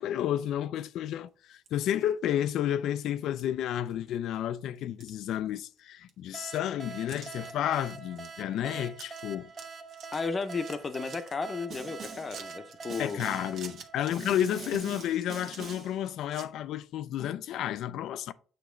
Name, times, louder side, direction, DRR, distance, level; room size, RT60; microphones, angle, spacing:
voice 1, 0.0-9.5 13.0-18.3, left 11 dB, 75° left, 0.4 m, -31 dB
sound 1, 1.5-2.1 2.6-2.7 3.4-3.5 3.9-4.4 4.7-5.8 6.1-6.2 7.1-7.5 7.9-8.3 8.6-8.7 8.9-9.2 9.5-11.3 11.8-16.5, right 6 dB, 65° right, 1.2 m, -50 dB
sound 2, 6.3-14.8, right 5 dB, 30° right, 0.8 m, -45 dB
voice 2, 10.1-13.2, left 4 dB, 30° left, 0.7 m, -34 dB
Snare drum, 11.7-12.4 12.9-13.6 14.1-16.0, right 4 dB, 50° right, 1.7 m, -43 dB
8.3 x 3.0 x 4.4 m
cardioid pair, 105°, 0 cm